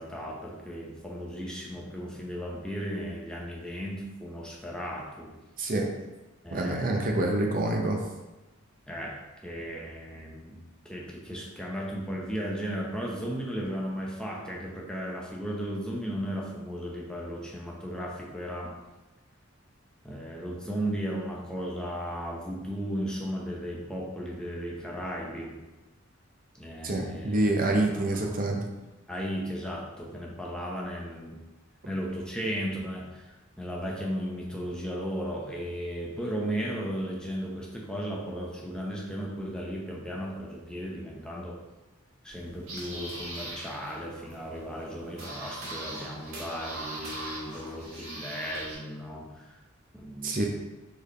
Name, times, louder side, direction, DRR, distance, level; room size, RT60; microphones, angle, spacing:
voice 1, 0.0-5.3 6.4-7.0 8.9-10.6 10.8-18.7 20.0-25.6 26.6-27.4 27.7-28.2 29.1-31.4 31.8-41.6 42.2-49.5 49.9-50.5, equal, 5° left, -3 dB, 0.7 m, -35 dB
voice 2, 5.6-5.9 6.5-8.0 26.8-28.6 50.2-50.5, right 2 dB, 45° right, 1 dB, 0.7 m, -26 dB
sound 1, 42.3-48.7, right 1 dB, 85° right, 1.3 m, -41 dB
4.3 x 3.3 x 3.2 m, 1.1 s
head